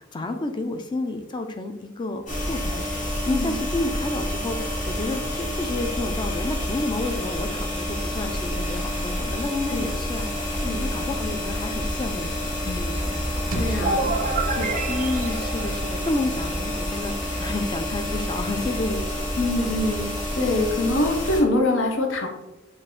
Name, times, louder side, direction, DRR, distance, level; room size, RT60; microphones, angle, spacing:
voice 1, 0.0-19.1, left 2 dB, 25° left, 6 dB, 0.4 m, -31 dB
sound 1, 2.3-21.4, left 1 dB, 40° left, 1.1 m, -28 dB
sound 2, 13.2-15.9, right 2 dB, 90° right, 0.5 m, -43 dB
voice 2, 13.5-14.2 14.6-14.8 19.4-20.1 20.4-22.3, left 2 dB, 70° left, 3 dB, 0.7 m, -24 dB
sound 3, 13.8-16.6, right 4 dB, 40° right, 0.4 m, -29 dB
5.3 x 2.5 x 3.7 m, 0.99 s
head